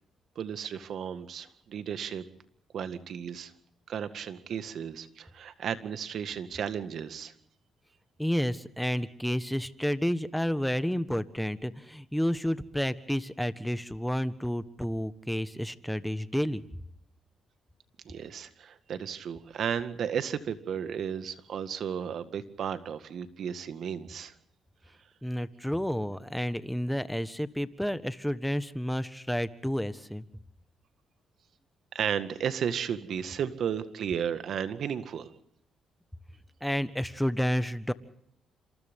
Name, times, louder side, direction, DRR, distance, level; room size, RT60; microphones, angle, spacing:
voice 1, 0.3-2.2 2.7-3.5 3.9-7.3 18.0-24.3 31.9-35.3, right 8 dB, 65° right, 11 dB, 1.8 m, -34 dB
voice 2, 8.2-16.6 25.2-30.2 36.6-37.9, equal, ahead, 13 dB, 1.4 m, -30 dB
28.0 x 27.0 x 3.7 m, 0.72 s
cardioid pair, 90°, 0 cm